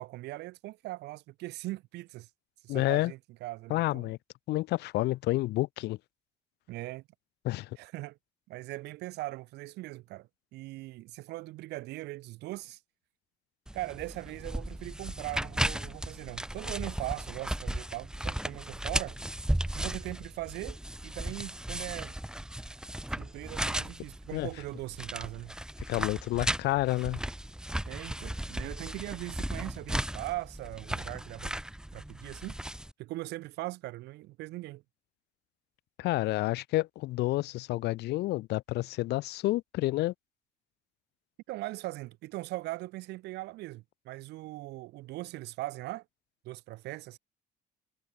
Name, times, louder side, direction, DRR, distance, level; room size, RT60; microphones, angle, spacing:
voice 1, 0.0-2.3 2.6-4.1 6.7-7.0 7.8-8.2 8.5-12.8 13.7-19.2 19.7-20.8 21.0-22.2 23.2-25.5 27.8-31.5 31.9-32.5 33.0-34.8 41.5-46.0 46.4-47.2, right 18 dB, 85° right, 5.2 m, -40 dB
voice 2, 2.7-3.1 3.7-4.2 4.5-6.0 7.4-7.7 24.3-24.5 25.9-27.2 36.0-40.1, left 18 dB, 80° left, 1.1 m, -29 dB
sound 1, 13.7-32.9, right 1 dB, 5° right, 2.1 m, -36 dB
cardioid pair, 110°, 17 cm